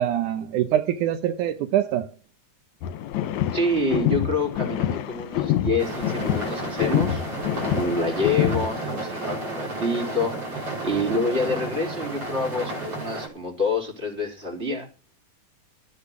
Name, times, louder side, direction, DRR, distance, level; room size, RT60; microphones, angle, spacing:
voice 1, 0.0-2.1, right 11 dB, 80° right, 2.4 m, -24 dB
sound 1, 2.8-8.8, left 12 dB, 75° left, 2.3 m, -26 dB
voice 2, 3.5-7.2 7.7-14.9, left 2 dB, 20° right, 3.8 m, -27 dB
sound 2, 5.8-13.3, right 2 dB, 50° right, 6.9 m, -32 dB
13.5 x 9.9 x 6.0 m
omnidirectional pair, 3.5 m